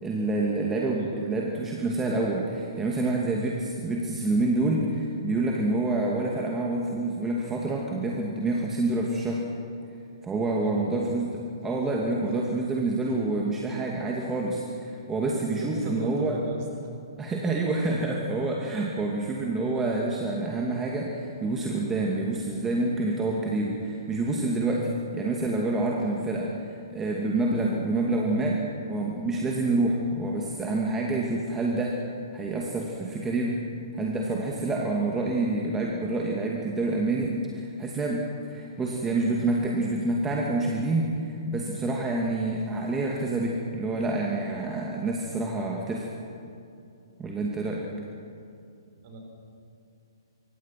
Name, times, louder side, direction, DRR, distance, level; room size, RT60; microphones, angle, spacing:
voice 1, 0.0-9.5 10.2-11.3 11.6-16.4 17.2-24.9 25.1-28.6 28.9-32.0 32.3-33.6 33.9-46.1 47.2-47.9, right 2 dB, 10° right, -1 dB, 2.5 m, -27 dB
voice 2, 0.9-1.3 10.6-11.2 11.9-12.0 12.3-12.4 12.7-13.1 15.5-16.6 17.4-17.5 24.8-24.9 31.0-31.2 47.2-47.4 49.0-49.2, right 2 dB, 40° right, 2 dB, 6.3 m, -39 dB
26.5 x 24.5 x 6.0 m, 2.6 s
figure-of-eight pair, 125°, 2 cm